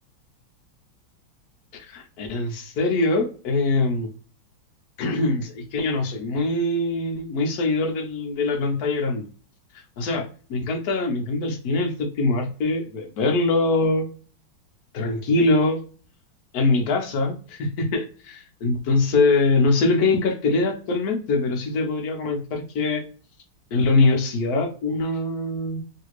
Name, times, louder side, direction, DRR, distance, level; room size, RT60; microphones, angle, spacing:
voice 1, 1.7-4.1 5.0-9.3 10.0-10.2 10.5-14.1 14.9-15.8 16.5-23.0 23.7-25.8, left 3 dB, 60° left, 3 dB, 1.1 m, -23 dB
3.2 x 2.8 x 3.0 m, 0.38 s
omnidirectional pair, 2.2 m